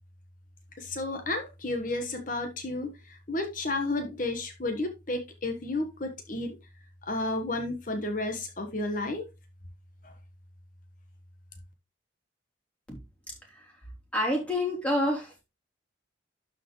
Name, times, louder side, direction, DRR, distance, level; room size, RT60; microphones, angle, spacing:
voice 1, 0.8-6.6 7.0-9.3 10.0-10.1, left 2 dB, 45° left, 1.4 m, -32 dB
voice 2, 14.1-15.4, left 1 dB, 5° left, 3.6 m, -28 dB
12.0 x 5.0 x 3.2 m
head